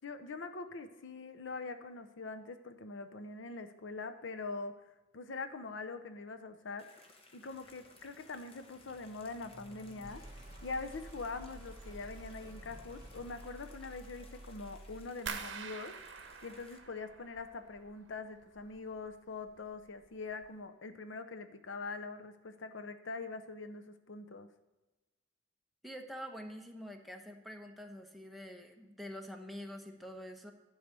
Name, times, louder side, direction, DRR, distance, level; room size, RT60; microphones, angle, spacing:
voice 1, 0.0-4.7 5.1-7.0 7.3-10.2 10.6-15.9 16.4-24.5, left 3 dB, 70° left, 9 dB, 0.7 m, -43 dB
sound 1, 6.8-16.8, left 2 dB, 30° left, 1.1 m, -61 dB
sound 2, 7.4-15.3, right 1 dB, 25° right, 2.0 m, -52 dB
sound 3, 15.3-18.1 18.4-19.1 19.5-19.9 20.3-20.5, right 6 dB, 65° right, 0.9 m, -45 dB
voice 2, 25.8-30.5, equal, ahead, 2 dB, 1.0 m, -46 dB
11.0 x 4.8 x 6.6 m, 1.1 s
head